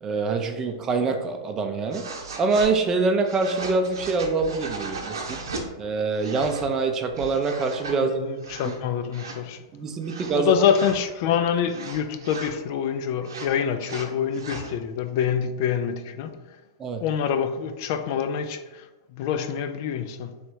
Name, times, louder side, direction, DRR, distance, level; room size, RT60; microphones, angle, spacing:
voice 1, 0.0-2.1 2.4-5.4 5.8-8.1 9.7-10.5 16.8-17.0, right 4 dB, 25° right, 0.5 m, -25 dB
sound 1, 1.9-2.7 3.2-5.7 6.1-6.7 7.1-7.9 8.4-8.8 9.1-9.4 10.0-11.0 11.7-12.6 13.2-14.7, right 3 dB, 90° right, 0.8 m, -37 dB
voice 2, 7.9-9.6 10.3-16.6 17.0-20.4, left 8 dB, 50° left, 0.3 m, -26 dB
3.2 x 2.8 x 4.6 m
hypercardioid pair, 135°, 2 cm